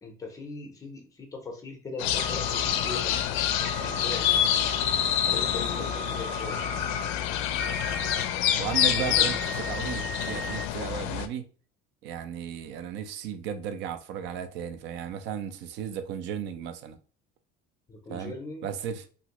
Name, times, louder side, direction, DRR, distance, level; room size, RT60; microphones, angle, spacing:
voice 1, 0.0-3.2 3.8-4.3 5.2-6.6 8.9-9.3 17.9-18.7, left 3 dB, 15° left, 0.6 m, -39 dB
sound 1, 2.0-11.3, left 11 dB, 80° left, 0.4 m, -27 dB
sound 2, 2.1-3.0 3.5-7.1 7.6-8.2 8.7-10.7, right 2 dB, 85° right, 1.1 m, -37 dB
voice 2, 8.6-11.5 12.0-17.0 18.1-18.3 18.6-19.1, right 8 dB, 60° right, 0.5 m, -35 dB
2.9 x 2.6 x 2.9 m
cardioid pair, 175°, 21 cm